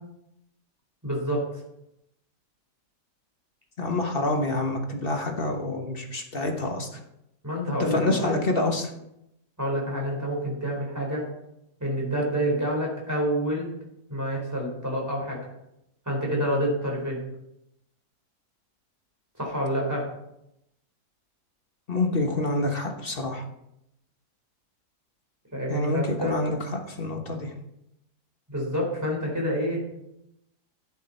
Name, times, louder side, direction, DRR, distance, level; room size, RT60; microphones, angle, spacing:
voice 1, 1.0-1.5 7.4-8.4 9.6-11.2 11.8-13.7 14.1-15.4 16.0-17.2 19.4-20.0 25.5-26.4 28.5-29.8, equal, 10° right, -2 dB, 4.5 m, -28 dB
voice 2, 3.8-7.0 7.8-8.9 21.9-23.4 25.7-27.5, left 2 dB, 35° left, 3 dB, 1.4 m, -27 dB
11.5 x 9.5 x 4.4 m, 0.83 s
omnidirectional pair, 1.7 m